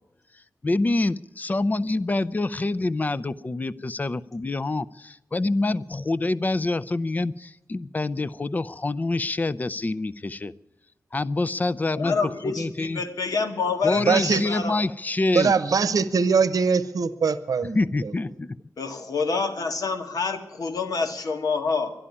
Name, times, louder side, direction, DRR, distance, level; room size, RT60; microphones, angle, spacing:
voice 1, 0.6-10.5 11.1-12.2 12.4-13.0 13.8-15.5 17.7-18.6, left 2 dB, 25° left, 0.4 m, -26 dB
voice 2, 11.9-14.8 18.8-21.9, left 4 dB, 85° left, 1.6 m, -27 dB
voice 3, 14.0-14.4 15.3-17.8 18.0-18.1, right 5 dB, 75° right, 0.8 m, -22 dB
12.0 x 11.5 x 9.8 m
wide cardioid pair, 125°, 6 cm